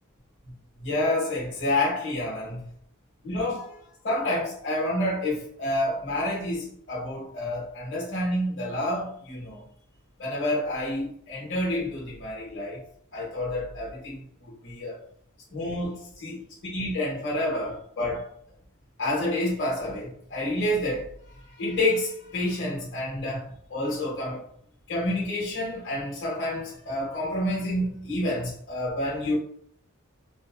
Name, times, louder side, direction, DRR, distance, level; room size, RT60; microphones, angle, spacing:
voice 1, 0.8-2.7 3.2-3.8 4.0-9.6 10.2-12.8 13.1-15.0 15.5-16.4 16.7-18.3 19.0-21.1 21.4-24.4 24.9-29.3, left 1 dB, 55° left, 1.2 m, -29 dB
3.9 x 2.1 x 2.4 m
head